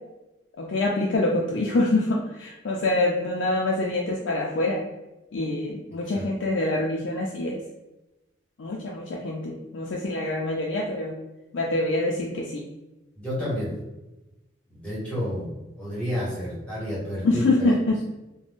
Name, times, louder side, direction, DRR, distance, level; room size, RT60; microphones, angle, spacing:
voice 1, 0.6-4.8 5.3-7.6 8.6-11.1 11.5-12.7 17.2-18.0, left 2 dB, 85° left, -1 dB, 0.4 m, -25 dB
voice 2, 13.1-13.7 14.7-15.5 15.8-17.4, equal, 5° left, -8 dB, 1.1 m, -30 dB
2.5 x 2.1 x 3.4 m, 1.0 s
head